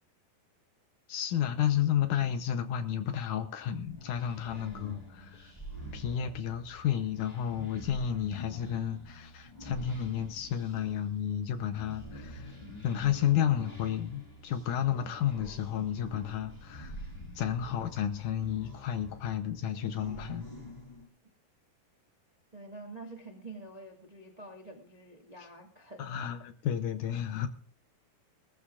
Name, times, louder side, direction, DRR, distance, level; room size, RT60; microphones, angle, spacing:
voice 1, 1.1-5.5 5.9-12.5 12.8-17.0 17.4-20.5 26.0-27.5, left 9 dB, 70° left, 9 dB, 2.0 m, -32 dB
sound 1, 3.6-21.1, left 1 dB, 15° left, 1.5 m, -47 dB
voice 2, 22.5-26.1, right 2 dB, 45° right, 1 dB, 0.5 m, -47 dB
20.0 x 14.0 x 2.4 m, 0.41 s
omnidirectional pair, 4.2 m